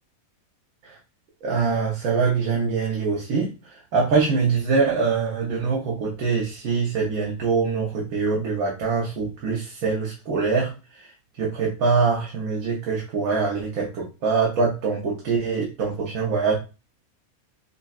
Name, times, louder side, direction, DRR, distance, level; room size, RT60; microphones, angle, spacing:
voice 1, 1.4-16.6, right 5 dB, 75° right, -2 dB, 1.2 m, -24 dB
5.3 x 2.1 x 2.3 m, 0.30 s
omnidirectional pair, 1.5 m